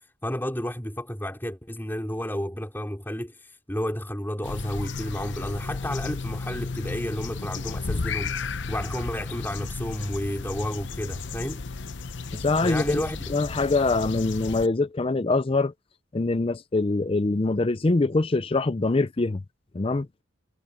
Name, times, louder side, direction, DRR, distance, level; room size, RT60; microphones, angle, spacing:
voice 1, 0.2-8.4 8.7-11.6 12.6-13.3, equal, 10° left, 4.6 m, -31 dB
sound 1, 4.4-14.7, left 4 dB, 65° left, 0.8 m, -33 dB
voice 2, 12.3-13.0 13.3-15.7 16.1-19.4 19.7-20.1, left 3 dB, 30° left, 0.5 m, -24 dB
head